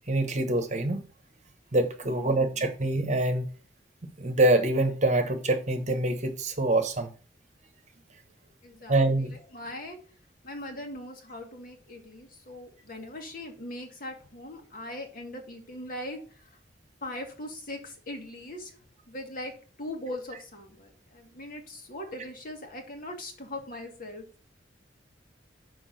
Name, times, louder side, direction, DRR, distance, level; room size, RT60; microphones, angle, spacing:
voice 1, 0.1-1.0 1.7-3.4 4.2-7.1 8.9-9.3, right 2 dB, 40° right, 1.1 m, -25 dB
voice 2, 2.0-2.7 8.6-10.0 10.4-16.6 17.0-18.7 19.1-24.3, left 1 dB, 50° left, 1.8 m, -40 dB
6.1 x 4.8 x 6.3 m
head